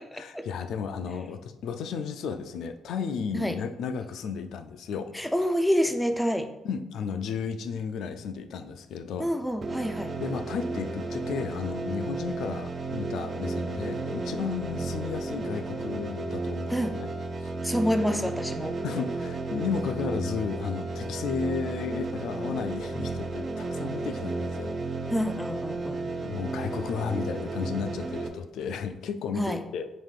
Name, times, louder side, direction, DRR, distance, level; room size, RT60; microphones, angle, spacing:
voice 1, 0.1-5.1 6.6-9.3 10.2-17.1 17.4-17.5 18.8-24.8 25.9-29.9, left 6 dB, 75° left, 9 dB, 0.3 m, -33 dB
voice 2, 5.1-6.5 9.2-10.1 16.7-16.9 17.6-18.7 25.1-26.0 29.4-29.6, equal, 5° left, 7 dB, 0.4 m, -27 dB
sound 1, 9.6-28.3, right 3 dB, 45° right, 0.5 m, -33 dB
4.9 x 3.7 x 2.4 m, 0.95 s
cardioid pair, 90°, 0 cm